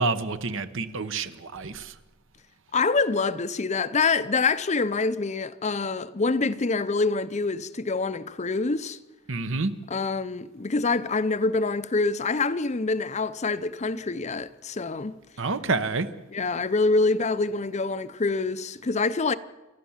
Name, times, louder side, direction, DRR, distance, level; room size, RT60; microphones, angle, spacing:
voice 1, 0.0-1.9 9.3-9.7 15.4-16.1, right 3 dB, 60° right, 1.1 m, -28 dB
voice 2, 2.7-9.0 9.9-15.1 16.3-19.3, left 3 dB, 30° left, 0.6 m, -26 dB
28.5 x 13.0 x 7.3 m
head